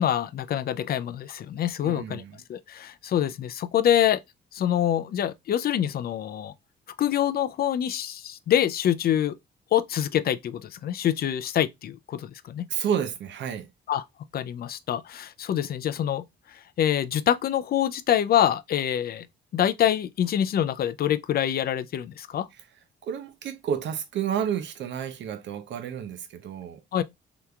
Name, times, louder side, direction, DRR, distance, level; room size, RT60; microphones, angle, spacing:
voice 1, 0.0-2.2 2.5-4.2 4.5-6.5 7.0-9.4 9.7-12.7 13.9-14.0 14.3-19.3 19.5-22.5 26.9-27.0, left 10 dB, 50° left, 0.4 m, -25 dB
voice 2, 1.8-2.4 12.7-13.7 23.0-26.8, right 8 dB, 65° right, 0.7 m, -30 dB
3.5 x 2.9 x 2.3 m
cardioid pair, 90°, 20 cm